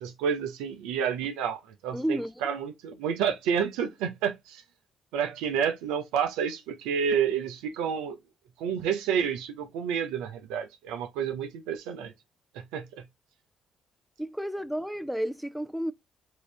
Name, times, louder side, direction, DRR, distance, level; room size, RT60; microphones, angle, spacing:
voice 1, 0.0-4.6 5.1-8.2 8.6-12.1 12.7-12.8, right 7 dB, 85° right, 0.7 m, -29 dB
voice 2, 1.9-2.5 14.2-15.9, right 1 dB, ahead, 0.6 m, -31 dB
3.9 x 2.7 x 4.8 m
hypercardioid pair, 50°, 0 cm